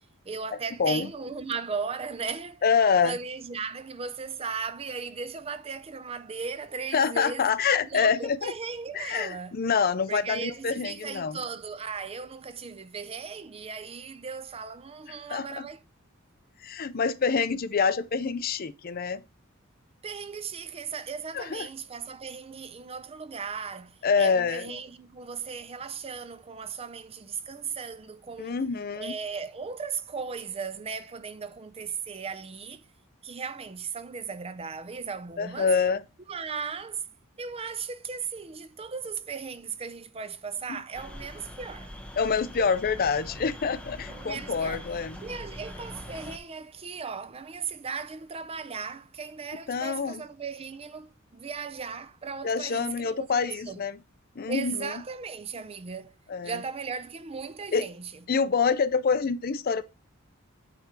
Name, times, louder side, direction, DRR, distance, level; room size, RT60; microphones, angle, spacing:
voice 1, 0.3-2.6 3.0-9.6 10.1-15.8 20.0-28.6 29.0-32.8 33.2-35.7 36.3-37.1 37.4-41.9 44.1-44.9 45.2-53.8 54.5-56.2 56.4-58.2, right 5 dB, 30° right, 0.5 m, -37 dB
voice 2, 2.6-3.2 6.9-8.5 8.9-11.4 15.3-15.7 16.6-19.2 21.3-21.7 24.0-24.7 28.4-29.1 35.4-36.0 40.7-40.8 42.2-45.2 49.7-50.2 52.4-54.0 54.4-54.9 56.3-56.6 57.7-57.8 58.3-59.8, left 5 dB, 45° left, 0.5 m, -26 dB
sound 1, 40.9-46.4, left 1 dB, 5° left, 1.1 m, -42 dB
8.9 x 3.4 x 5.8 m
head